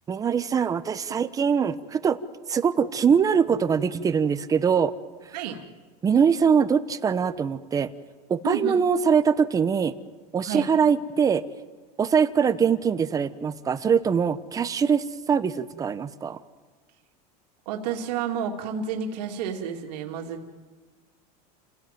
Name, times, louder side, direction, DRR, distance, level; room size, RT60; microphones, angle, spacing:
voice 1, 0.1-2.2 2.5-4.9 6.0-7.9 8.3-9.9 10.3-11.4 12.0-16.4, right 6 dB, 15° right, 12 dB, 1.0 m, -22 dB
voice 2, 8.4-8.8 10.4-10.7 17.7-20.4, right 7 dB, 85° right, 1 dB, 2.9 m, -30 dB
29.5 x 17.0 x 9.3 m, 1.4 s
supercardioid pair, 160°, 20 cm